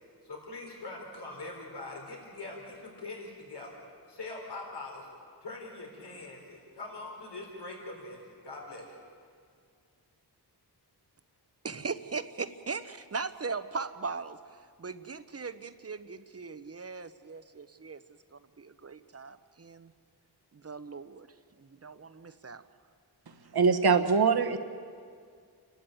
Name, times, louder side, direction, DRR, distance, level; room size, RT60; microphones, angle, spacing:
voice 1, 0.2-3.7 4.1-5.1 5.4-8.9, left 2 dB, 75° left, 0 dB, 4.4 m, -43 dB
voice 2, 11.6-14.4 14.8-18.0 18.6-19.9 20.6-21.3 21.8-22.6, right 4 dB, 35° right, 12 dB, 0.9 m, -38 dB
voice 3, 23.5-24.6, right 5 dB, 65° right, 7 dB, 1.3 m, -23 dB
28.5 x 12.5 x 9.1 m, 2.1 s
wide cardioid pair, 80°, 41 cm